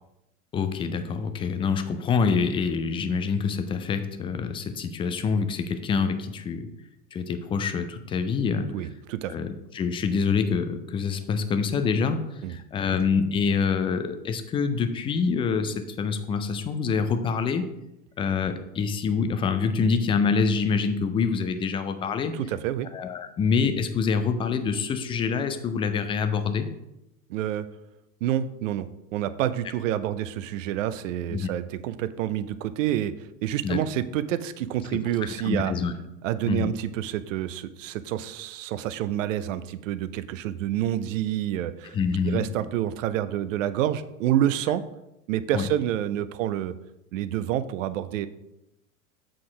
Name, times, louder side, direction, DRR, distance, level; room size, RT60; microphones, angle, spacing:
voice 1, 0.5-6.7 7.1-8.8 9.3-17.7 18.2-22.4 22.9-26.7 31.3-31.5 33.6-33.8 34.9-35.9 36.5-36.7 41.8-42.5 45.5-45.7, left 5 dB, 15° left, 8 dB, 0.3 m, -26 dB
voice 2, 8.7-9.3 12.4-12.5 22.3-22.9 27.3-27.7 28.2-33.1 33.4-35.7 36.2-42.0 42.2-44.8 45.3-46.7 47.1-48.3, right 11 dB, 60° right, 14 dB, 0.7 m, -28 dB
7.5 x 4.2 x 4.9 m, 0.90 s
figure-of-eight pair, 90°, 44 cm